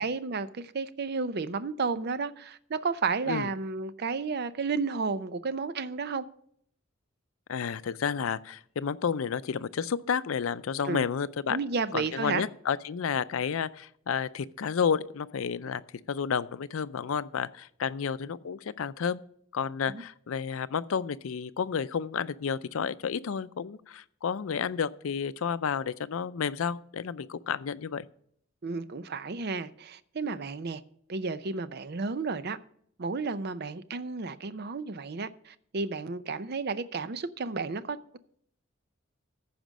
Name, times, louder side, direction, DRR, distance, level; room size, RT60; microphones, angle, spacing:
voice 1, 0.0-6.3 10.8-11.0 11.5-12.4 19.9-20.0 28.6-30.8 31.1-32.6 33.0-38.2, right 4 dB, 55° right, 0.6 m, -32 dB
voice 2, 7.5-11.6 11.9-15.8 16.1-19.2 19.5-28.1, left 6 dB, 85° left, 0.5 m, -31 dB
14.5 x 5.1 x 6.2 m
head